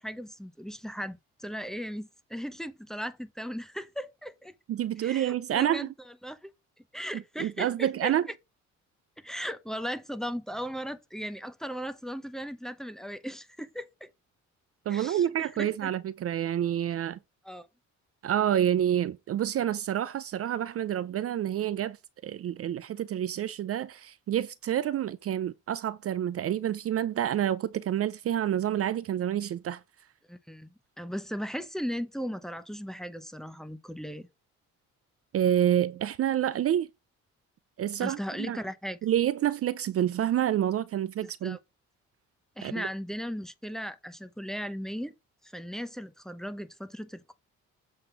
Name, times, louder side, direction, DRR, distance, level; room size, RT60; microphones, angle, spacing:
voice 1, 0.0-4.5 5.0-5.9 6.2-6.4 6.9-8.1 9.2-14.1 14.9-15.9 17.4-17.7 30.3-34.3 38.0-39.0 41.2-41.6 42.6-45.1 45.4-47.3, equal, ahead, 0.8 m, -37 dB
voice 2, 4.7-5.9 7.1-8.3 14.9-17.2 18.2-22.0 22.2-29.8 35.3-36.9 37.8-38.6 39.0-41.6 42.6-42.9, right 11 dB, 50° right, 0.5 m, -28 dB
7.5 x 3.6 x 5.8 m
cardioid pair, 90°, 30 cm